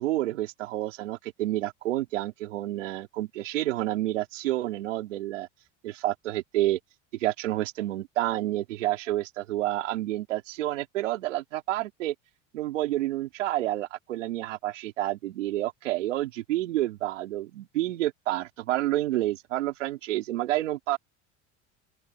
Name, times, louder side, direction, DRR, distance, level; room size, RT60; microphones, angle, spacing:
voice 1, 0.0-5.5 5.8-6.8 7.2-12.1 12.5-21.0, right 15 dB, 90° right, 5.1 m, -29 dB
open air
supercardioid pair, 95°, 36 cm